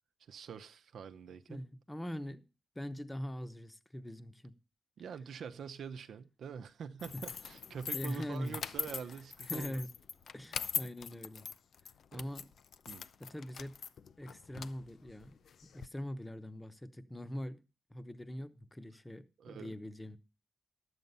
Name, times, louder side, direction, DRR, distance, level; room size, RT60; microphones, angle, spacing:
voice 1, 0.3-1.7 5.0-9.8 12.1-12.2 12.9-13.0 19.4-19.7, right 7 dB, 85° right, 0.8 m, -45 dB
voice 2, 1.5-2.4 2.7-4.6 7.1-7.2 7.9-8.6 9.5-9.9 10.3-11.5 12.1-12.5 13.2-13.8 14.2-17.6 17.9-20.2, equal, 10° left, 0.8 m, -42 dB
sound 1, 7.0-15.9, left 7 dB, 70° left, 0.5 m, -42 dB
11.5 x 8.1 x 5.4 m
wide cardioid pair, 130°, 0 cm